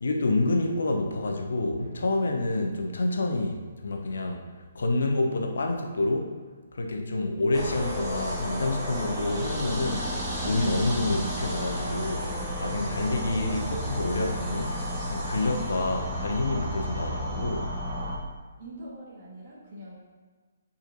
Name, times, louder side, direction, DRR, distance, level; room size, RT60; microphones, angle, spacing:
voice 1, 0.0-4.4 4.7-6.4 6.7-10.1 10.4-12.3 12.6-14.8 15.1-17.7, left 2 dB, 60° left, 2 dB, 0.8 m, -28 dB
Drum, 1.8-5.8, equal, 85° right, 1.1 m, -46 dB
sound 1, 7.5-18.2, equal, 10° right, 1.3 m, -32 dB
voice 2, 18.6-20.0, right 1 dB, 40° right, -5 dB, 1.5 m, -44 dB
8.7 x 4.2 x 2.6 m, 1.4 s
figure-of-eight pair, 130°, 0 cm